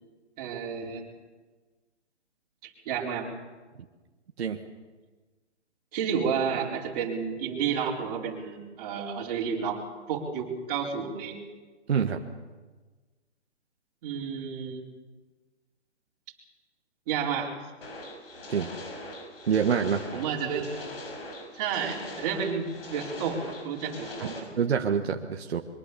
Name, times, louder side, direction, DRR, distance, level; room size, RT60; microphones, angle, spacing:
voice 1, 0.4-1.1 2.6-3.3 5.9-9.8 10.1-11.4 14.0-14.8 17.1-17.5 20.1-20.8 21.5-24.5, right 6 dB, 35° right, -2 dB, 4.6 m, -31 dB
voice 2, 11.9-12.2 18.5-18.7 19.5-20.1 24.6-25.6, right 7 dB, 60° right, 4 dB, 1.6 m, -26 dB
sound 1, 17.8-24.4, left 1 dB, 55° left, 6.3 m, -41 dB
23.5 x 23.0 x 7.1 m, 1.3 s
hypercardioid pair, 145°, 35 cm